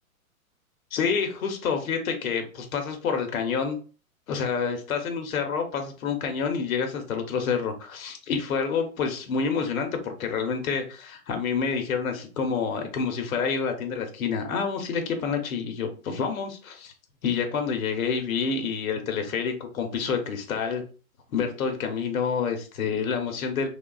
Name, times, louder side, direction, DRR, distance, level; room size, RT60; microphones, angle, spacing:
voice 1, 0.9-3.8 4.3-16.9 17.2-20.8 21.3-23.7, left 6 dB, 70° left, 6 dB, 0.8 m, -28 dB
3.1 x 2.3 x 2.3 m, 0.37 s
hypercardioid pair, 145°, 43 cm